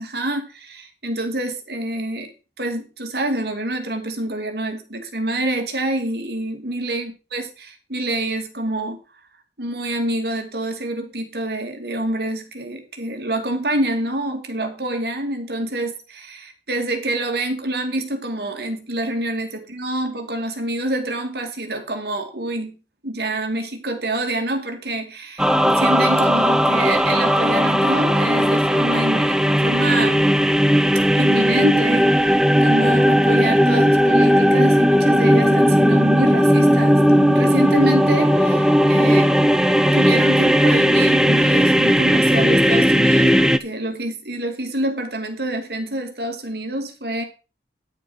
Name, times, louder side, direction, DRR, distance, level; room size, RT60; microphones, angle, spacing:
voice 1, 0.0-2.3 2.6-9.0 9.6-22.8 23.0-30.3 31.1-39.3 39.9-47.2, right 1 dB, 60° right, 2.4 m, -26 dB
sound 1, 25.4-43.6, equal, 5° right, 0.6 m, -16 dB
10.0 x 6.7 x 6.2 m
head